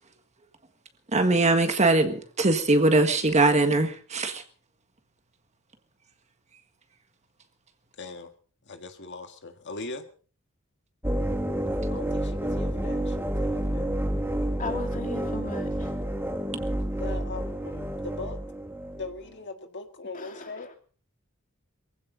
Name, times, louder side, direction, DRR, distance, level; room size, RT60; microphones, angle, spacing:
voice 1, 1.1-4.4, right 2 dB, 35° right, 1.7 m, -21 dB
voice 2, 8.0-8.3 8.7-10.0 11.9-13.9 16.9-18.4 18.9-20.7, left 3 dB, 60° left, 1.7 m, -40 dB
sound 1, 11.0-19.1, right 1 dB, 10° right, 2.1 m, -29 dB
voice 3, 14.6-15.9 20.1-20.7, left 2 dB, 40° left, 2.9 m, -37 dB
22.5 x 15.5 x 3.9 m
head